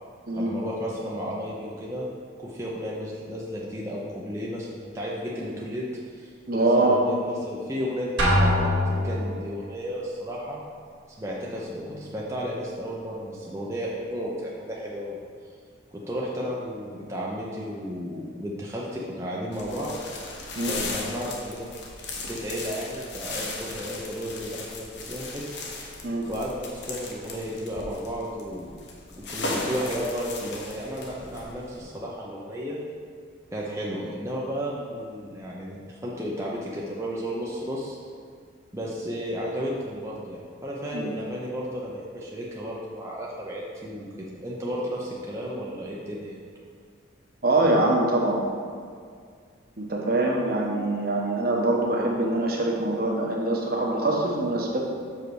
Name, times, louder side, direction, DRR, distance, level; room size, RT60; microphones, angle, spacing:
voice 1, 0.3-2.1 2.4-5.8 6.1-10.6 11.1-15.2 16.1-20.1 20.7-21.9 22.2-25.4 26.3-28.8 29.2-32.8 33.5-38.0 38.7-46.3, equal, 15° right, -5 dB, 0.7 m, -33 dB
voice 2, 6.5-7.0 20.5-20.8 26.0-26.3 40.9-41.1 47.4-48.4 49.8-54.8, right 2 dB, 50° right, -1 dB, 1.0 m, -24 dB
Drum, 8.2-9.4, left 1 dB, 80° right, 1.5 m, -22 dB
sound 1, 19.5-31.8, left 2 dB, 65° left, 1.0 m, -37 dB
6.6 x 5.1 x 4.7 m, 2.1 s
head